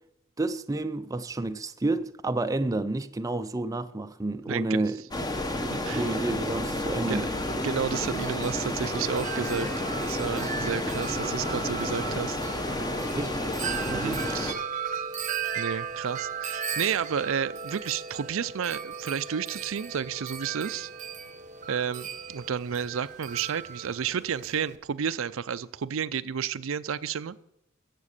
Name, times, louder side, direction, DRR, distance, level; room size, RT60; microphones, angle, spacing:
voice 1, 0.4-5.0 5.9-7.3 13.2-13.4 13.8-14.3, right 2 dB, 15° right, 0.5 m, -30 dB
voice 2, 4.5-4.8 5.7-6.1 7.1-7.4 7.6-9.7 10.1-12.4 13.9-14.6 15.6-20.9 21.7-27.4, right 7 dB, 70° right, 0.5 m, -31 dB
sound 1, 5.1-14.5, left 1 dB, 20° left, 1.0 m, -31 dB
Wind chime, 7.9-24.8, right 7 dB, 35° right, 0.8 m, -37 dB
14.5 x 7.4 x 6.6 m
head